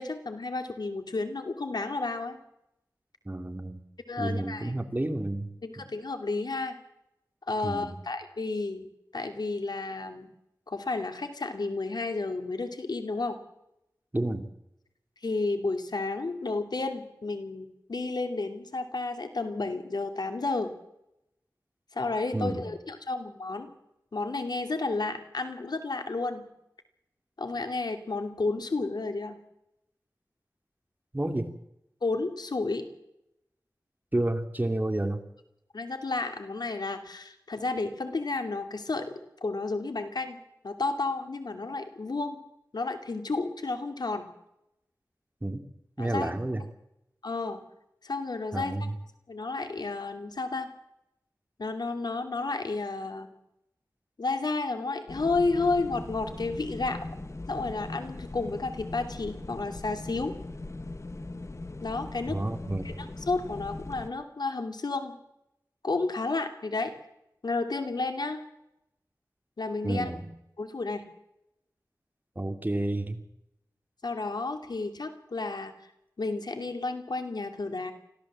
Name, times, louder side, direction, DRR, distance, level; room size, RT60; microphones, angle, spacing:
voice 1, 0.0-2.4 4.1-4.7 5.6-6.8 7.5-8.9 9.1-10.3 10.7-13.4 15.2-20.7 21.9-23.7 24.1-26.5 27.4-29.3 32.0-32.8 35.7-39.1 39.4-40.4 40.6-42.4 42.7-44.3 46.0-46.3 47.2-47.6 48.0-48.8 49.3-50.7 51.6-53.3 54.2-57.0 57.5-60.3 61.8-62.4 62.8-65.2 65.8-66.9 67.4-68.4 69.6-70.1 70.6-71.1 74.0-75.7 76.2-77.9, left 3 dB, 90° left, 7 dB, 2.6 m, -31 dB
voice 2, 3.3-3.8 4.2-5.5 7.6-7.9 14.1-14.5 22.3-22.6 31.1-31.5 34.1-35.2 45.4-45.6 46.0-46.6 48.5-49.0 62.3-63.0 69.8-70.2 72.4-73.2, right 1 dB, 25° right, 6 dB, 2.7 m, -30 dB
sound 1, 55.1-64.1, left 2 dB, 45° left, 1.5 m, -40 dB
25.5 x 16.0 x 7.6 m, 0.84 s
wide cardioid pair, 70°, 7 cm